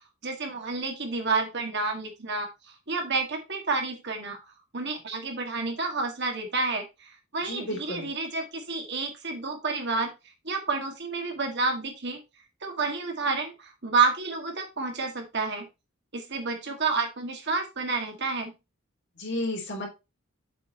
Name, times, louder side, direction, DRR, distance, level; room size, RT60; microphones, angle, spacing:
voice 1, 0.2-4.4 4.7-10.1 10.4-12.2 12.6-15.7 16.1-18.5, right 4 dB, 55° right, 3 dB, 2.1 m, -29 dB
voice 2, 7.4-8.1 19.2-19.9, left 1 dB, 55° left, 0 dB, 3.4 m, -32 dB
7.6 x 5.2 x 4.2 m, 0.25 s
head